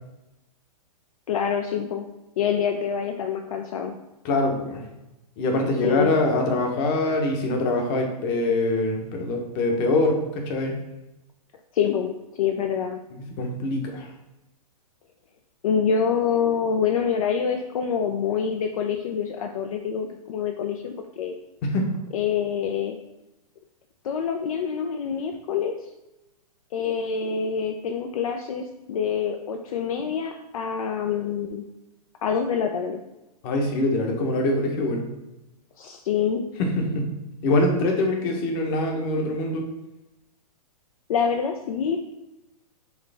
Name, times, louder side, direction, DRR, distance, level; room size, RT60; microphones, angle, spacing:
voice 1, 1.3-2.1 2.4-4.0 5.8-6.1 11.7-13.0 15.6-21.4 22.1-23.0 24.0-25.7 26.7-31.6 32.2-33.0 35.8-36.4 41.1-42.0, left 7 dB, 65° left, 4 dB, 0.5 m, -26 dB
voice 2, 4.2-4.8 5.4-10.8 13.2-14.1 21.6-21.9 33.4-35.0 36.6-37.1 37.4-39.6, left 2 dB, 35° left, 2 dB, 1.0 m, -24 dB
4.7 x 3.2 x 3.4 m, 0.97 s
hypercardioid pair, 140°, 19 cm